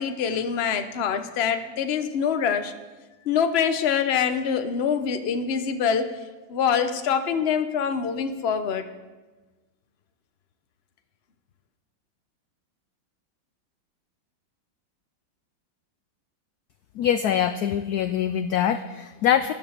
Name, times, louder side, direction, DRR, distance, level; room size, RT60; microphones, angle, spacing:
voice 1, 0.0-2.7 3.3-6.1 6.5-8.9, left 7 dB, 45° left, 8 dB, 0.8 m, -25 dB
voice 2, 17.0-19.5, left 9 dB, 75° left, 11 dB, 0.9 m, -23 dB
12.5 x 11.0 x 6.6 m, 1.2 s
omnidirectional pair, 2.1 m